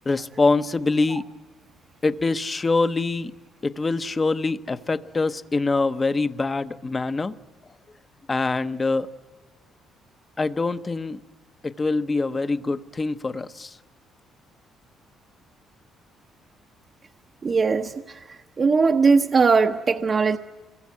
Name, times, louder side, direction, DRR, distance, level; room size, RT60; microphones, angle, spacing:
voice 1, 0.0-1.2 2.0-3.3 3.6-7.4 8.3-9.1 10.4-11.2 11.6-13.8, left 3 dB, 20° left, 0.8 m, -24 dB
voice 2, 17.4-17.9 18.6-20.4, right 4 dB, 25° right, 0.8 m, -19 dB
27.5 x 23.0 x 9.4 m
cardioid pair, 170°, 0 cm